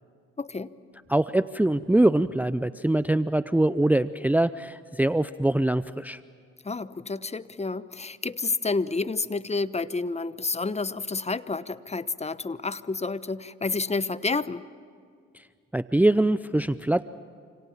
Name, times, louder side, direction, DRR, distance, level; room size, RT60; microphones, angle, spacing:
voice 1, 0.4-0.7 6.6-14.6, left 3 dB, 20° left, 15 dB, 1.1 m, -29 dB
voice 2, 1.1-6.2 15.7-17.0, right 1 dB, 5° right, 14 dB, 0.6 m, -23 dB
28.5 x 26.5 x 7.4 m, 2.2 s
supercardioid pair, 55°, 29 cm